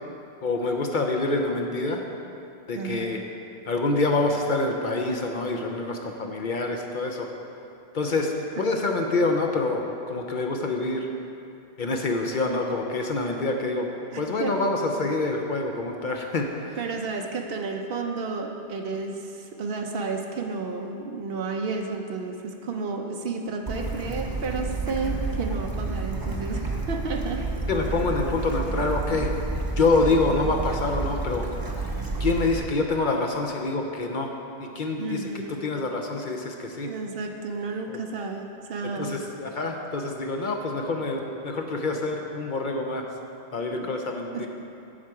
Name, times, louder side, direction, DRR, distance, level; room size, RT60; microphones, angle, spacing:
voice 1, 0.4-2.0 2.7-3.2 3.7-7.3 7.9-11.1 11.8-13.9 14.2-16.8 27.7-29.3 29.8-31.5 32.2-34.3 34.6-36.9 37.9-38.0 39.0-43.0 43.5-44.5, left 3 dB, 55° left, 2 dB, 0.7 m, -26 dB
voice 2, 2.8-3.3 8.6-8.7 14.1-14.6 16.8-27.4 35.0-35.6 36.9-39.2 43.7-43.9 44.3-44.5, right 4 dB, 65° right, 3 dB, 0.8 m, -32 dB
Bird / Stream, 23.7-32.6, right 3 dB, 25° right, 0.7 m, -30 dB
7.4 x 7.3 x 4.7 m, 2.7 s
omnidirectional pair, 1.1 m